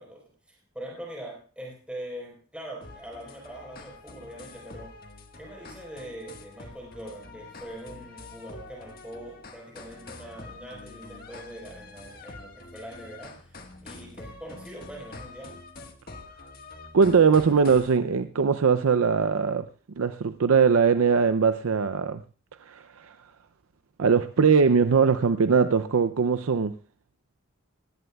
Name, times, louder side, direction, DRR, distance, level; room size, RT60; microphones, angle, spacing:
voice 1, 0.0-4.9 5.4-15.6, right 1 dB, 5° right, -2 dB, 4.1 m, -42 dB
sound 1, 2.8-18.0, left 3 dB, 45° left, 1.5 m, -46 dB
voice 2, 16.9-19.7 20.0-22.2 22.6-23.1 24.0-26.8, right 5 dB, 90° right, 11 dB, 0.5 m, -21 dB
19.0 x 16.0 x 2.3 m, 0.37 s
head